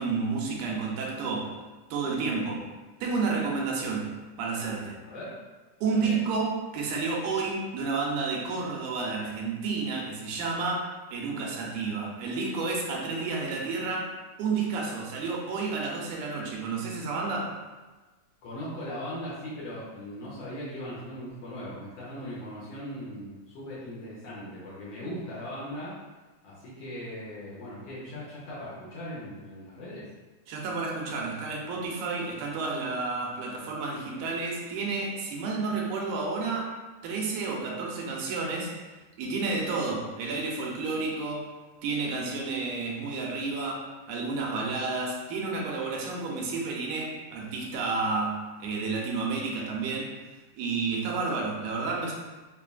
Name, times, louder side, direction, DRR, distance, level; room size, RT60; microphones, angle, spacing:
voice 1, 0.0-1.6 1.9-2.7 3.0-4.1 4.4-5.0 5.8-14.1 14.4-17.6 30.5-36.8 37.0-38.7 39.2-41.5 41.8-50.2 50.6-52.1, right 4 dB, 85° right, -2 dB, 2.1 m, -31 dB
voice 2, 18.4-26.0 26.4-30.1, equal, 65° left, -8 dB, 1.7 m, -39 dB
5.4 x 2.4 x 2.3 m, 1.2 s
omnidirectional pair, 3.5 m